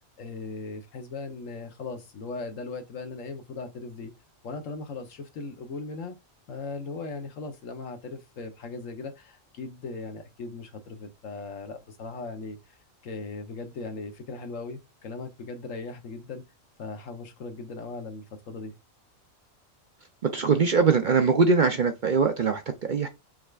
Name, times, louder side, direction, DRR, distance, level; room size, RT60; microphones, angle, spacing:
voice 1, 0.2-4.1 4.4-6.1 6.5-12.8 13.0-16.4 16.8-18.7, left 3 dB, 80° left, 1.3 m, -38 dB
voice 2, 20.3-23.1, right 5 dB, 50° right, 0.6 m, -22 dB
5.6 x 3.3 x 2.4 m
omnidirectional pair, 1.3 m